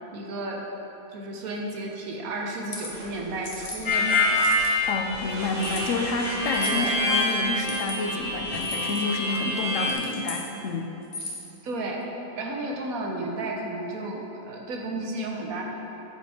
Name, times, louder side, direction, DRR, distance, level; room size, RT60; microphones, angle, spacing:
voice 1, 0.1-0.7 1.1-4.6 6.7-6.9 11.6-12.0 12.3-15.6, right 2 dB, 90° right, 0 dB, 1.4 m, -33 dB
sound 1, 2.5-2.9 3.4-3.8 4.3-4.8 5.6-5.8 6.5-6.8 7.5-8.0 8.5-9.0 9.7-10.4 11.0-11.5, left 2 dB, 30° left, 1.2 m, -37 dB
sound 2, 2.9-8.6, right 1 dB, 45° right, 1.1 m, -42 dB
Harmonica, 3.9-9.9, left 2 dB, 90° left, 1.9 m, -26 dB
voice 2, 4.9-10.9, left 3 dB, 65° left, 4 dB, 1.0 m, -29 dB
9.0 x 5.2 x 4.9 m, 3.0 s
omnidirectional pair, 1.5 m